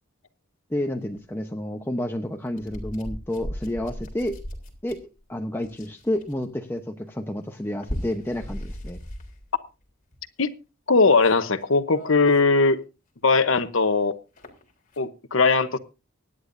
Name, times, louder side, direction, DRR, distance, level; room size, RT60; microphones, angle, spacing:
voice 1, 0.7-4.4 4.8-5.0 5.3-9.0, left 1 dB, 10° left, 0.9 m, -30 dB
sound 1, 1.2-1.3 2.5-5.2 5.6-6.5 7.6-9.5 9.8-10.2 11.0-12.4 12.7-12.8 13.6-13.7 14.4-15.0, equal, 40° left, 3.5 m, -37 dB
voice 2, 10.9-12.8 13.2-14.2 15.0-15.8, left 3 dB, 65° left, 1.0 m, -19 dB
24.5 x 10.0 x 2.6 m
head